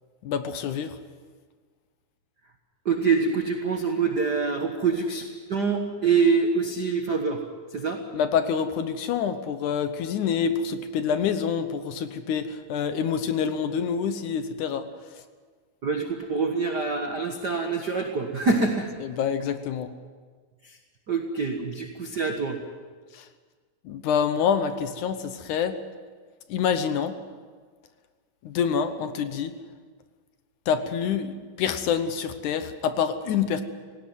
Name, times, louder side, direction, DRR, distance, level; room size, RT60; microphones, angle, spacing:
voice 1, 0.2-0.9 8.1-14.8 19.2-19.9 23.9-25.8 26.5-27.1 28.5-29.5 30.7-33.6, left 7 dB, 70° left, 10 dB, 2.2 m, -26 dB
voice 2, 2.8-7.4 7.7-8.0 15.8-18.9 20.6-20.8 21.1-22.6, right 4 dB, 55° right, 3 dB, 1.1 m, -25 dB
18.5 x 17.5 x 9.5 m, 1.5 s
omnidirectional pair, 4.1 m